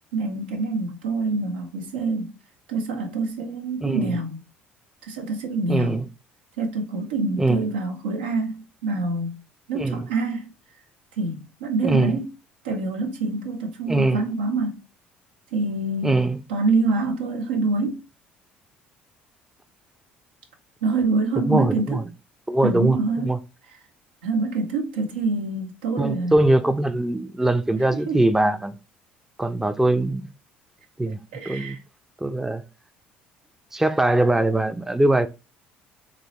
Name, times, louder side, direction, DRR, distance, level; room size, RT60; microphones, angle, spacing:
voice 1, 0.1-2.3 2.7-4.4 5.1-6.0 6.6-9.3 9.7-10.5 11.2-12.3 12.6-14.8 15.5-16.2 16.5-18.0 20.8-22.0 22.6-23.3 24.2-26.4 28.1-28.2 31.3-31.8, right 3 dB, 85° right, 0.6 m, -26 dB
voice 2, 3.8-4.2 5.7-6.1 7.4-7.7 9.7-10.1 11.8-12.2 13.9-14.2 16.0-16.4 21.5-22.0 22.5-23.4 26.0-28.7 29.4-30.3 31.0-31.2 31.5-31.8 32.2-32.6 33.7-35.3, right 2 dB, 5° right, 0.4 m, -22 dB
3.0 x 2.6 x 2.8 m
hypercardioid pair, 65°, 5 cm